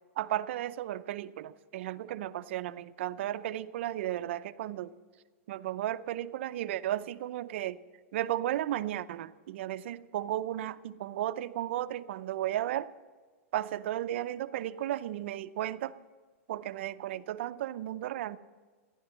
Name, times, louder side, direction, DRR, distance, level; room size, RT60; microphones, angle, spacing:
voice 1, 0.2-4.9 5.5-7.8 8.1-12.9 13.5-15.9 16.5-18.4, right 13 dB, 55° right, 13 dB, 0.5 m, -34 dB
15.0 x 10.5 x 7.3 m, 1.4 s
supercardioid pair, 165°, 8 cm